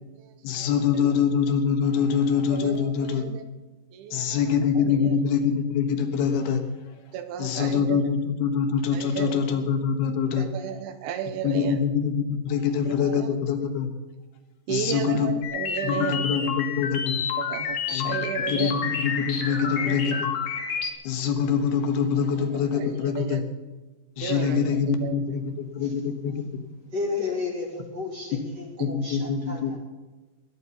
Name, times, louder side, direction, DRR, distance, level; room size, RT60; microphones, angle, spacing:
voice 1, 0.4-3.3 4.1-6.6 7.4-10.5 11.4-13.9 14.7-15.3 15.8-17.2 17.9-18.2 18.5-20.3 21.0-23.4 24.2-26.4 28.8-29.8, left 7 dB, 75° left, 5 dB, 3.2 m, -25 dB
voice 2, 2.5-3.4 3.9-4.4 4.9-5.1 7.1-8.0 8.9-9.4 10.4-11.8 12.9-13.3 14.7-16.5 17.4-18.8 19.6-20.2 22.7-23.4 24.2-25.1 28.8-28.9, right 9 dB, 80° right, 10 dB, 2.8 m, -33 dB
sound 1, 15.4-20.9, left 6 dB, 55° left, 2.4 m, -29 dB
voice 3, 26.9-29.8, left 4 dB, 30° right, 1 dB, 2.7 m, -32 dB
21.0 x 9.8 x 5.5 m, 1.2 s
omnidirectional pair, 4.6 m